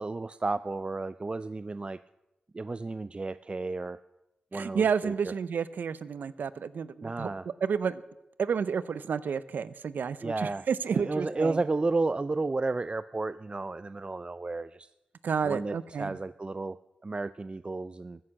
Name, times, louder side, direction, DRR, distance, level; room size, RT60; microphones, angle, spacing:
voice 1, 0.0-2.0 2.5-4.0 4.5-5.3 7.0-7.5 10.2-10.7 10.9-14.9 15.4-18.2, right 3 dB, 35° right, 14 dB, 0.4 m, -32 dB
voice 2, 4.5-7.3 7.6-8.0 8.4-11.6 15.2-16.2, right 6 dB, 80° right, 16 dB, 0.6 m, -30 dB
14.5 x 9.7 x 6.5 m, 0.94 s
cardioid pair, 50°, 3 cm